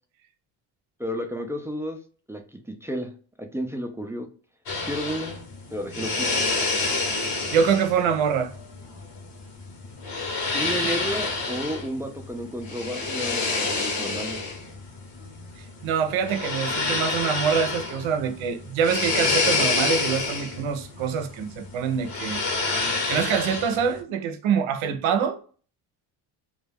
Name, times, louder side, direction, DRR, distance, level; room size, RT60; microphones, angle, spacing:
voice 1, 1.0-2.0 2.3-3.1 3.4-4.3 4.8-5.4 5.7-6.3 10.5-14.4, equal, 5° right, 0.3 m, -32 dB
sound 1, 4.7-24.0, left 3 dB, 60° left, 1.0 m, -28 dB
voice 2, 7.5-8.5 10.8-10.9 15.6-22.4 23.1-25.4, right 7 dB, 85° right, 0.6 m, -25 dB
2.3 x 2.2 x 3.3 m
cardioid pair, 90°, 47 cm